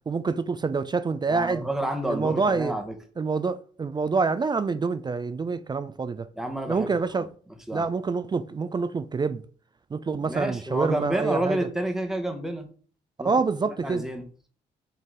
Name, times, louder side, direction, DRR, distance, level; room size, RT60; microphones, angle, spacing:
voice 1, 0.1-1.7 2.1-2.8 3.2-6.3 6.7-7.3 7.7-9.4 9.9-11.7 13.2-14.0, right 4 dB, 25° right, 0.4 m, -26 dB
voice 2, 1.3-2.9 6.4-7.3 7.7-7.9 10.2-12.7 13.2-13.3 13.7-14.2, right 1 dB, ahead, 1.1 m, -30 dB
4.3 x 3.2 x 3.7 m
hypercardioid pair, 45°, 19 cm